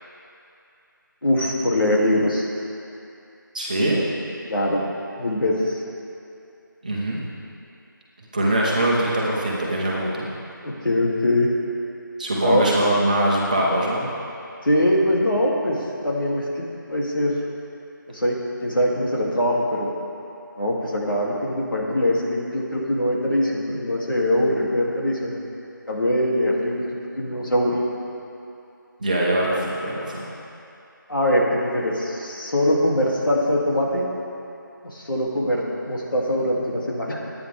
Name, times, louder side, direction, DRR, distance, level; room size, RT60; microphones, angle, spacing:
voice 1, 1.2-2.5 4.5-4.8 5.2-5.8 10.6-11.5 12.4-12.7 14.6-17.4 18.1-18.4 18.6-19.9 20.6-25.3 25.9-26.9 27.2-27.8 31.1-34.1 34.8-37.2, left 1 dB, 75° left, -3 dB, 3.0 m, -22 dB
voice 2, 3.5-4.0 6.8-7.2 8.3-10.3 12.2-14.1 29.0-30.2, right 1 dB, 20° right, -5 dB, 1.4 m, -22 dB
20.5 x 9.4 x 3.6 m, 2.7 s
figure-of-eight pair, 175°, 11 cm